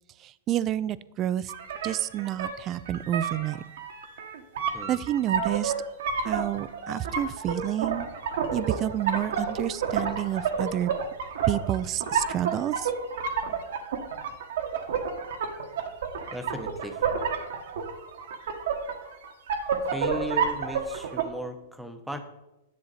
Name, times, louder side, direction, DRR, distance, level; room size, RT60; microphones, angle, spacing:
voice 1, 0.2-1.5 1.8-3.6 4.9-5.7 6.2-8.1 8.5-10.9 11.5-12.9, right 12 dB, 25° right, 18 dB, 0.4 m, -29 dB
sound 1, 1.5-21.2, right 6 dB, 70° right, 1.5 m, -30 dB
voice 2, 4.7-5.1 16.3-17.1 19.9-22.2, right 1 dB, 5° right, 7 dB, 0.8 m, -36 dB
10.5 x 7.6 x 4.1 m, 0.96 s
hypercardioid pair, 150°, 0 cm